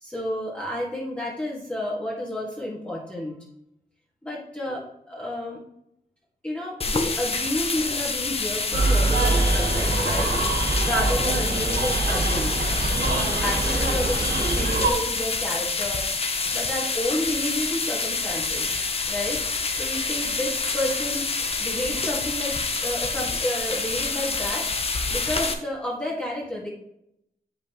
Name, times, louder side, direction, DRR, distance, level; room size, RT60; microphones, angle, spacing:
voice 1, 0.0-3.4 4.2-5.6 6.4-12.6 13.0-16.0 16.5-18.7 19.1-19.4 19.7-21.3 21.6-26.7, left 1 dB, 5° left, -5 dB, 1.8 m, -31 dB
sound 1, 6.8-25.5, left 4 dB, 40° left, 0.7 m, -27 dB
sound 2, 8.7-14.9, right 2 dB, 80° right, 1.3 m, -24 dB
7.7 x 5.4 x 3.0 m, 0.79 s
cardioid pair, 85°, 16 cm